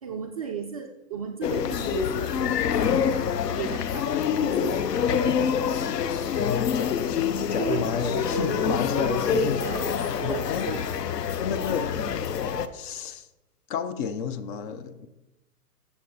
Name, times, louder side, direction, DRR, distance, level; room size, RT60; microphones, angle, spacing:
voice 1, 0.0-2.9 3.5-4.1 4.3-5.4 7.6-11.0, right 6 dB, 25° right, 0.3 m, -34 dB
sound 1, 1.4-12.7, left 8 dB, 85° left, 0.9 m, -26 dB
voice 2, 6.3-7.2 7.5-9.6 10.2-10.8 11.3-12.0 12.7-13.3 13.7-15.1, left 7 dB, 35° left, 0.7 m, -31 dB
12.5 x 7.1 x 4.2 m
hypercardioid pair, 130°, 47 cm